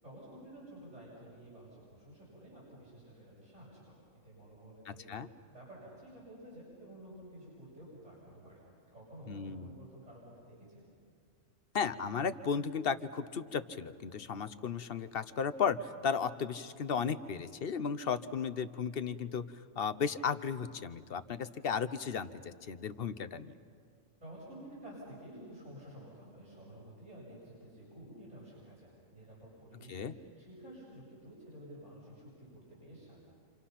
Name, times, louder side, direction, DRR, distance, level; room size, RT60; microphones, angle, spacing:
voice 1, 0.0-3.9 4.2-8.6 8.9-10.9 24.2-33.2, right 1 dB, 70° right, -8 dB, 7.9 m, -52 dB
voice 2, 4.9-5.3 9.3-9.7 11.7-19.4 19.8-23.6 29.9-30.1, left 6 dB, 55° left, 12 dB, 0.9 m, -35 dB
29.5 x 27.5 x 5.8 m, 2.2 s
omnidirectional pair, 1.3 m